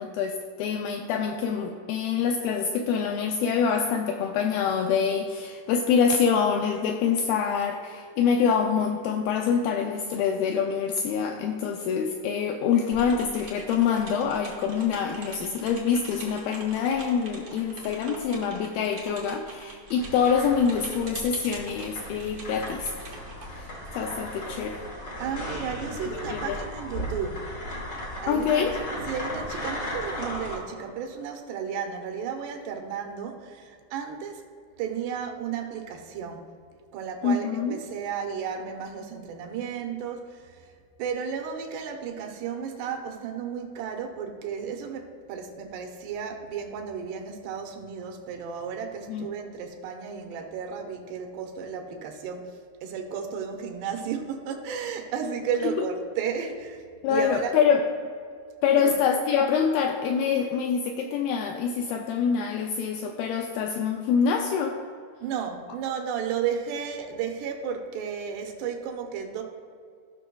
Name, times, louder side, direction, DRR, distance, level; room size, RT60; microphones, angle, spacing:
voice 1, 0.0-22.9 23.5-23.7 24.0-24.8 26.1-26.6 28.3-28.7 37.2-37.8 49.1-49.3 55.8-55.9 57.0-57.8 58.6-64.8, left 6 dB, 85° left, 3 dB, 2.1 m, -25 dB
sound 1, 12.9-24.5, right 2 dB, 70° right, 1.1 m, -44 dB
sound 2, 20.0-30.6, left 1 dB, 70° left, 1.0 m, -36 dB
voice 2, 25.2-27.5 28.2-28.7 29.1-34.4 34.8-36.5 36.9-40.7 41.0-57.5 58.8-59.0 65.2-69.4, right 7 dB, 90° right, 3 dB, 3.0 m, -33 dB
16.5 x 6.1 x 2.3 m, 2.2 s
omnidirectional pair, 4.6 m